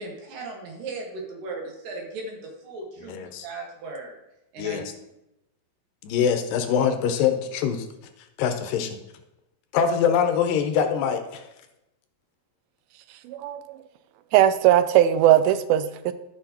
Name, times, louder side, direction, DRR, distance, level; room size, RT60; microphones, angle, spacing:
voice 1, 0.0-3.2 3.4-4.2 4.5-4.9, right 3 dB, 70° right, 0 dB, 3.3 m, -37 dB
voice 2, 3.1-3.5 4.6-4.8 6.0-7.9 8.4-9.0 9.7-11.4, left 7 dB, 80° left, 7 dB, 2.3 m, -23 dB
voice 3, 13.3-13.6 14.3-16.1, right 12 dB, 90° right, 12 dB, 2.4 m, -19 dB
14.5 x 5.8 x 2.9 m, 0.91 s
omnidirectional pair, 4.1 m